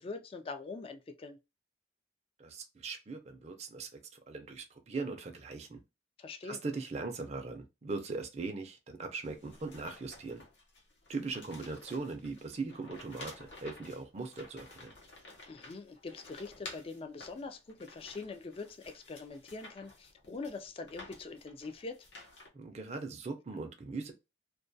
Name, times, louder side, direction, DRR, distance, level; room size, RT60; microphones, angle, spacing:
voice 1, 0.0-1.4 6.2-6.6 15.5-22.1, left 3 dB, 30° left, 0.3 m, -43 dB
voice 2, 2.4-4.0 4.3-5.8 6.4-10.4 11.1-14.9 22.5-24.1, right 3 dB, 35° right, 0.4 m, -40 dB
sound 1, 9.2-22.5, left 2 dB, 80° left, 0.8 m, -52 dB
2.2 x 2.2 x 2.6 m
head